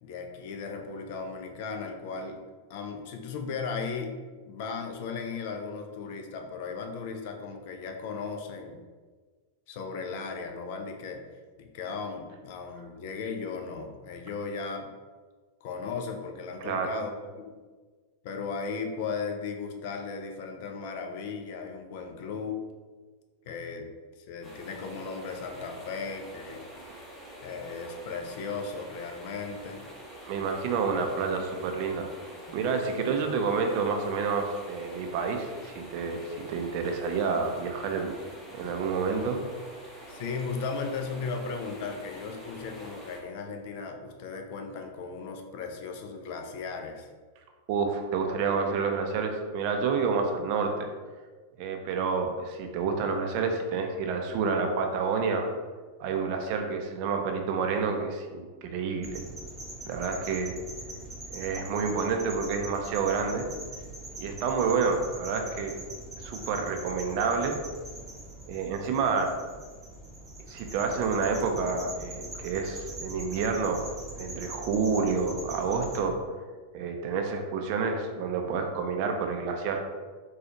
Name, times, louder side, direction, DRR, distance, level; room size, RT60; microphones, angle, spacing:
voice 1, 0.0-2.4 2.7-4.2 4.4-8.8 9.7-11.2 11.6-14.9 15.6-17.5 18.2-22.6 23.5-23.9 24.2-26.6 27.4-29.8 40.1-47.1, left 5 dB, 50° left, 4 dB, 0.4 m, -36 dB
sound 1, 24.4-43.2, right 1 dB, 20° left, 1.0 m, -46 dB
voice 2, 30.3-32.1 32.5-36.2 36.5-38.1 38.5-39.4 47.7-50.9 51.6-55.5 56.0-59.2 59.9-60.5 61.3-63.5 64.2-65.7 66.2-67.6 68.5-69.3 70.5-73.8 74.2-76.1 76.7-79.8, right 5 dB, 45° right, 4 dB, 0.5 m, -29 dB
sound 2, 59.0-76.0, right 1 dB, 15° right, 0.8 m, -42 dB
4.1 x 2.3 x 2.9 m, 1.4 s
figure-of-eight pair, 90°, 0 cm